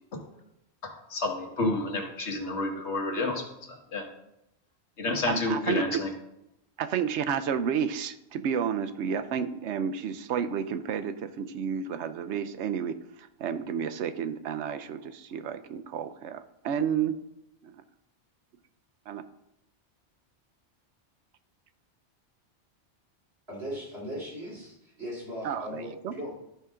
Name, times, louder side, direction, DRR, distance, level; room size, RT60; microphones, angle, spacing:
voice 1, 0.8-4.1 5.0-6.1, left 2 dB, 85° left, 2 dB, 1.7 m, -30 dB
voice 2, 5.3-6.0 6.8-17.2 17.6-17.7 19.1-19.2 25.4-26.1, right 7 dB, 85° right, 12 dB, 0.9 m, -31 dB
voice 3, 23.5-26.3, equal, 65° right, -5 dB, 3.8 m, -38 dB
12.0 x 5.7 x 3.7 m, 0.86 s
omnidirectional pair, 1.1 m